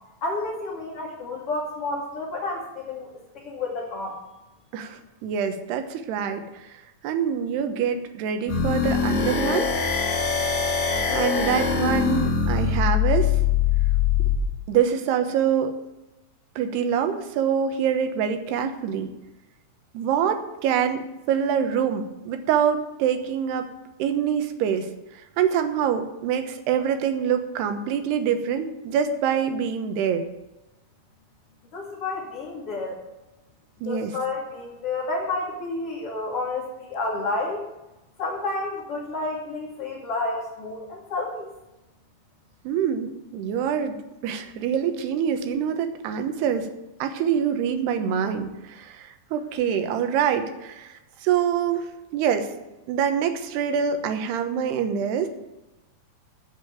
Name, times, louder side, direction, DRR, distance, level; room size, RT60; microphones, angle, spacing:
voice 1, 0.2-3.1 3.3-4.2 31.7-33.0 33.8-37.6 38.2-41.5, left 2 dB, 40° left, -5 dB, 2.9 m, -30 dB
voice 2, 4.7-9.7 10.7-13.3 14.7-15.8 16.6-19.1 19.9-23.7 24.0-24.9 25.4-30.3 33.8-34.1 42.6-44.0 44.2-46.7 47.0-52.5 52.9-55.3, right 8 dB, 85° right, 7 dB, 3.2 m, -25 dB
sound 1, 8.5-14.4, left 7 dB, 85° left, 4.4 m, -23 dB
14.0 x 5.2 x 8.8 m, 1.0 s
omnidirectional pair, 4.6 m